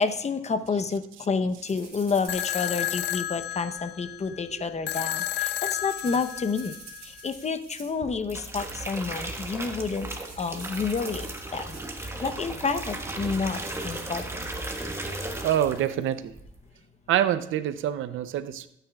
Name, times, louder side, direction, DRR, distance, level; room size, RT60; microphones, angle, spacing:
voice 1, 0.0-6.7 7.0-10.1 10.4-11.7 12.0-14.2, left 4 dB, 35° left, 11 dB, 0.8 m, -29 dB
sound 1, 1.6-3.6 5.1-8.1 8.4-8.8 9.3-9.5 9.8-12.1 13.1-14.0, right 4 dB, 40° right, 4.4 m, -48 dB
sound 2, 2.3-7.3, left 13 dB, 60° left, 0.5 m, -32 dB
sound 3, 8.0-16.0 16.3-16.7, right 1 dB, 15° right, 1.4 m, -35 dB
voice 2, 15.4-16.3 17.1-18.7, right 11 dB, 80° right, 13 dB, 0.6 m, -26 dB
16.0 x 9.2 x 2.4 m, 0.79 s
cardioid pair, 90°, 20 cm